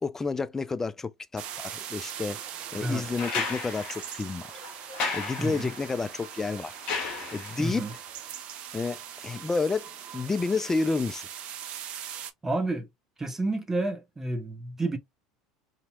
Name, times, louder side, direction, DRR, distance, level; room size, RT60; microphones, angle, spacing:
voice 1, 0.0-2.4 2.7-4.5 5.1-6.7 7.3-7.9 8.7-11.3, left 4 dB, 15° left, 0.3 m, -30 dB
sound 1, 1.4-12.3, right 9 dB, 50° right, 0.5 m, -41 dB
voice 2, 2.7-3.0 5.4-5.7 7.6-7.9 12.4-12.9 13.2-15.0, right 2 dB, 15° right, 0.9 m, -30 dB
sound 2, 3.2-7.8 9.3-9.4, left 4 dB, 45° left, 1.1 m, -35 dB
2.9 x 2.7 x 2.3 m
figure-of-eight pair, 70°, 3 cm